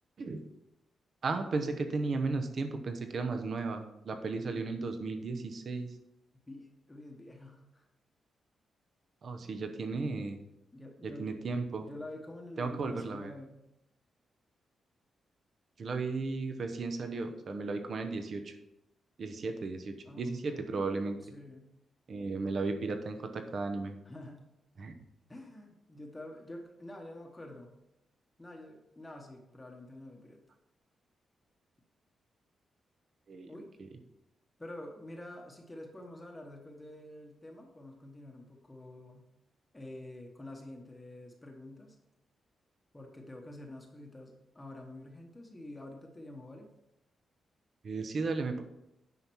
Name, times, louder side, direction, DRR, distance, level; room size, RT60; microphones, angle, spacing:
voice 1, 1.2-5.9 9.2-10.4 11.2-11.9 12.6-13.3 15.8-18.5 19.2-21.2 22.1-24.0 24.8-24.9 33.3-33.5 47.8-48.6, right 3 dB, 45° right, 7 dB, 0.9 m, -35 dB
voice 2, 6.5-7.8 9.4-9.8 10.7-11.4 11.8-13.6 20.0-20.8 21.2-21.7 24.0-24.4 25.3-27.7 28.4-30.4 33.5-33.7 34.6-39.3 39.7-42.0 42.9-46.7, left 1 dB, 15° left, 1 dB, 1.1 m, -48 dB
9.5 x 5.6 x 4.6 m, 0.87 s
wide cardioid pair, 160°, 0 cm